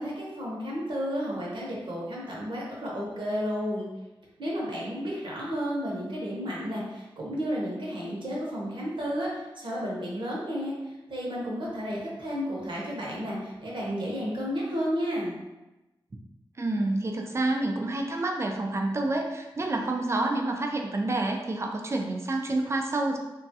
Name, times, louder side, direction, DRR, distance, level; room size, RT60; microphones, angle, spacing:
voice 1, 0.0-3.9 4.4-10.7 11.1-15.4, equal, 65° right, -5 dB, 0.9 m, -32 dB
voice 2, 16.6-23.2, right 2 dB, 30° right, 2 dB, 0.4 m, -28 dB
3.0 x 2.3 x 2.7 m, 1.0 s
wide cardioid pair, 100°, 9 cm